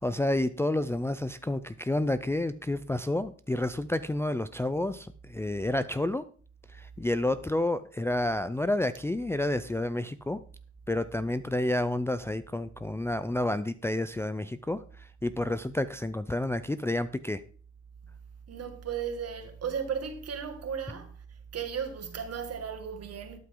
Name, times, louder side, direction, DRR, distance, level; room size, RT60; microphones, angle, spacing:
voice 1, 0.0-6.2 6.8-10.4 10.9-14.8 15.2-17.4, left 1 dB, 10° left, 0.5 m, -30 dB
voice 2, 18.5-21.2 21.5-23.4, right 7 dB, 55° right, 2.3 m, -35 dB
12.5 x 8.7 x 3.9 m
cardioid pair, 90°, 30 cm